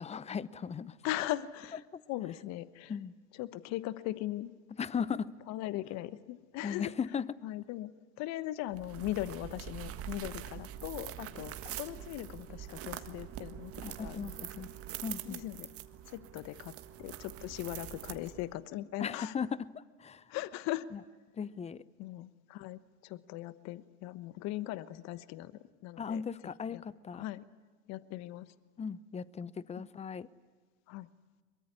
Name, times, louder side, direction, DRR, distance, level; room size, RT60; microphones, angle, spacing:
voice 1, 0.0-1.0 1.9-2.0 2.9-3.1 4.8-5.3 6.6-7.3 13.8-14.7 15.0-15.4 19.0-20.2 20.9-21.0 21.3-21.8 26.0-27.2 28.8-30.3, left 6 dB, 20° left, 19 dB, 0.8 m, -37 dB
voice 2, 1.0-1.8 2.1-2.9 3.4-4.5 5.5-6.9 7.4-7.9 8.2-14.3 15.2-15.7 16.1-16.7 17.0-19.3 20.3-20.9 22.0-25.5 25.8-26.2 26.7-26.8 27.2-27.4 27.9-28.5 30.9-31.1, left 15 dB, 55° left, 16 dB, 1.2 m, -39 dB
sound 1, 8.7-18.6, right 11 dB, 45° right, 1.6 m, -44 dB
22.5 x 22.5 x 9.7 m, 1.4 s
hypercardioid pair, 95°, 33 cm